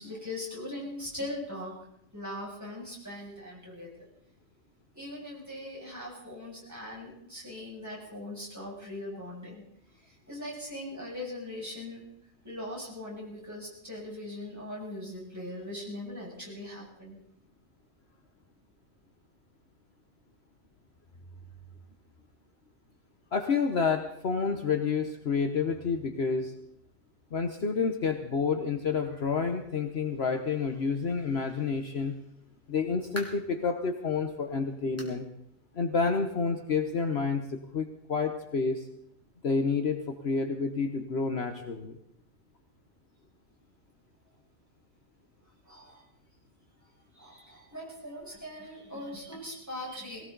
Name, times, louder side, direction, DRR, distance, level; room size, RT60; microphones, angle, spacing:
voice 1, 0.0-1.8 2.1-4.1 4.9-9.6 10.0-12.1 12.4-17.2 45.7-46.0 47.2-50.3, left 1 dB, 10° right, -5 dB, 7.1 m, -40 dB
voice 2, 23.3-26.5 27.3-32.2 32.7-35.2 35.7-38.9 39.4-42.0, left 5 dB, 55° left, 5 dB, 1.3 m, -29 dB
sound 1, 33.1-33.6 34.1-34.2 35.0-35.2 35.6-35.7 36.2-36.3 37.4-37.5, equal, 10° left, 2.8 m, -43 dB
20.5 x 18.0 x 4.0 m, 0.78 s
omnidirectional pair, 1.4 m